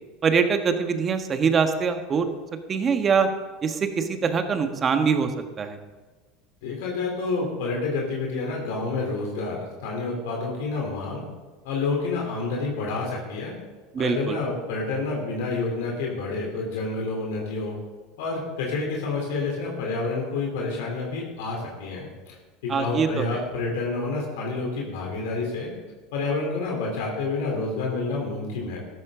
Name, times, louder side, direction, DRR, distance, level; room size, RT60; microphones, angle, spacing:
voice 1, 0.2-2.3 2.7-3.3 3.6-5.3 5.6-5.8 13.9-14.4 22.7-23.2, right 6 dB, 35° right, 7 dB, 1.5 m, -23 dB
voice 2, 6.6-11.2 11.6-13.6 14.0-17.8 18.2-22.4 22.6-25.7 26.1-28.8, left 3 dB, 75° left, -1 dB, 3.7 m, -29 dB
14.0 x 12.0 x 3.9 m, 1.3 s
hypercardioid pair, 90°, 0 cm